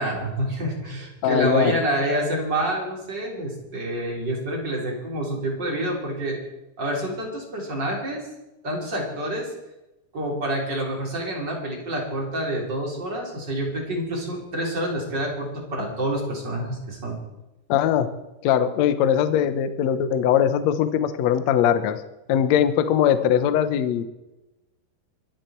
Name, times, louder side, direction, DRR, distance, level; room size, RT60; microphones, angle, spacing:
voice 1, 0.0-6.4 6.8-8.2 8.6-9.5 10.1-17.2, right 1 dB, 25° right, -2 dB, 4.3 m, -27 dB
voice 2, 1.2-1.7 17.7-18.1 18.4-22.0 22.3-24.0, left 9 dB, 75° left, 11 dB, 1.6 m, -21 dB
24.5 x 11.5 x 4.5 m, 0.98 s
omnidirectional pair, 4.6 m